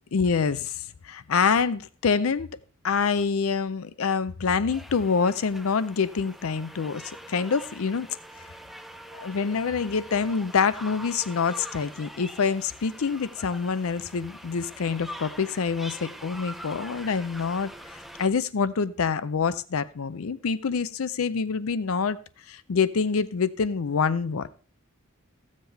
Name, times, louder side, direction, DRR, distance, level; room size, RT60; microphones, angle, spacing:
voice 1, 0.1-2.5 2.8-8.1 9.1-17.7 18.2-22.2 22.5-24.5, left 5 dB, 70° left, 0.5 m, -26 dB
sound 1, 4.7-18.3, equal, ahead, 0.6 m, -43 dB
15.0 x 7.5 x 3.4 m
head